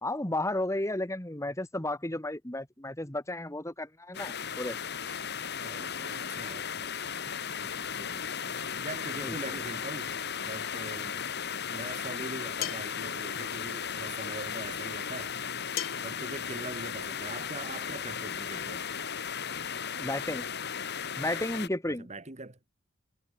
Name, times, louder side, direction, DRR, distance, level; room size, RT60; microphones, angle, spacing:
voice 1, 0.0-4.8 9.2-9.3 20.0-20.5 21.2-22.1, left 1 dB, 15° left, 2.0 m, -33 dB
sound 1, 4.1-21.7, left 7 dB, 55° left, 2.6 m, -36 dB
voice 2, 5.6-7.2 7.6-8.3 8.8-10.1 10.5-11.2 11.7-15.4 16.0-18.8 21.9-22.6, right 2 dB, 35° right, 1.9 m, -42 dB
sound 2, 12.6-13.0 15.8-16.2, left 11 dB, 75° left, 1.8 m, -35 dB
head